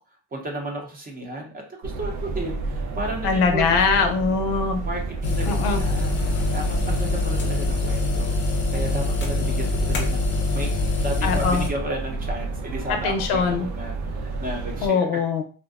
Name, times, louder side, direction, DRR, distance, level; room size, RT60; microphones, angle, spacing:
voice 1, 0.3-4.1 4.8-6.2 6.5-8.3 8.7-10.3 10.5-15.1, right 1 dB, 25° right, 1 dB, 0.6 m, -33 dB
sound 1, 1.8-14.9, right 3 dB, 80° right, 0.7 m, -30 dB
voice 2, 3.2-4.8 5.5-5.8 11.2-11.6 13.0-13.7 14.8-15.4, left 5 dB, 90° left, 6 dB, 0.6 m, -22 dB
sound 2, 5.2-11.7, left 3 dB, 30° left, 0.5 m, -25 dB
2.5 x 2.1 x 2.3 m, 0.39 s
cardioid pair, 120°, 38 cm